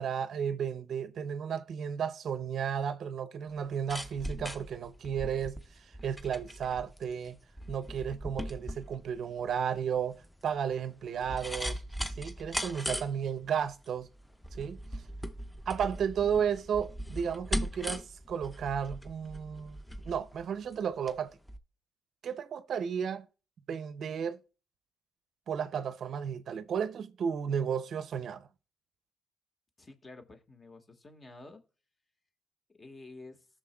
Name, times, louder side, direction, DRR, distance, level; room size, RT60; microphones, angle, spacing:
voice 1, 0.0-5.6 6.0-7.4 7.7-11.8 12.2-14.1 14.6-14.8 15.7-19.8 20.1-21.3 22.2-23.3 23.7-24.4 25.5-28.5, right 7 dB, 65° right, 0.5 m, -33 dB
sound 1, 3.5-21.2 21.5-21.6, equal, 10° left, 0.7 m, -39 dB
voice 2, 29.8-31.6 32.7-33.5, left 2 dB, 35° left, 1.5 m, -50 dB
18.5 x 6.3 x 2.2 m
supercardioid pair, 60°, 0 cm